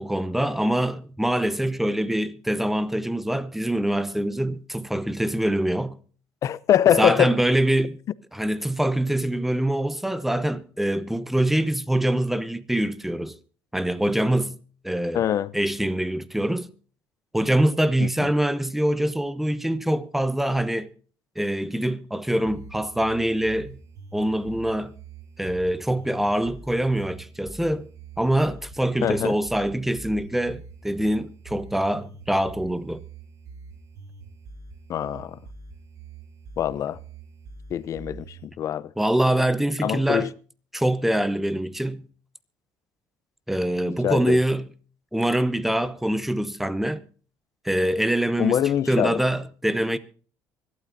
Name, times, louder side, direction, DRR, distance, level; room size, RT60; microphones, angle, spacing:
voice 1, 0.0-6.0 7.0-8.0 8.3-13.3 13.7-14.6 14.8-15.2 15.5-16.7 17.3-20.9 21.4-23.8 24.1-24.9 25.4-27.9 28.2-33.0 39.0-40.3 40.7-42.0 43.5-44.7 45.1-47.0 47.6-48.6 48.9-50.0, right 1 dB, 5° right, 0.9 m, -24 dB
voice 2, 6.4-7.3 15.1-15.5 18.0-18.3 29.0-29.4 34.9-35.4 36.6-37.0 37.7-38.9 39.8-40.3 43.8-44.4 48.4-49.2, left 10 dB, 50° left, 0.7 m, -23 dB
sound 1, 22.5-38.5, right 4 dB, 55° right, 4.8 m, -44 dB
24.5 x 12.5 x 2.7 m
cardioid pair, 115°, 7 cm